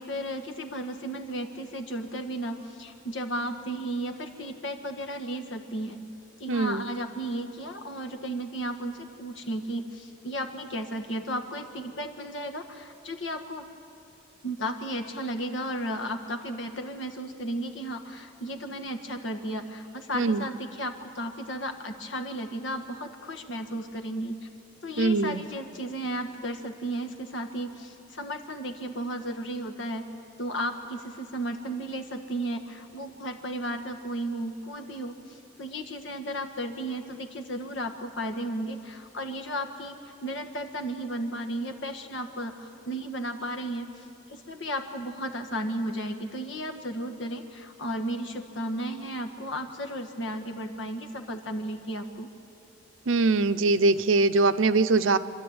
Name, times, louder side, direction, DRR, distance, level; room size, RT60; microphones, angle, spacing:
voice 1, 0.0-6.0 6.4-13.7 14.4-24.4 24.8-30.1 30.4-35.1 35.6-40.0 40.2-43.9 44.3-52.3, right 1 dB, 70° left, 6 dB, 1.6 m, -34 dB
voice 2, 6.5-6.9 20.1-20.5 25.0-25.4 53.1-55.2, right 3 dB, 90° right, 11 dB, 0.7 m, -22 dB
27.0 x 12.5 x 8.8 m, 2.6 s
head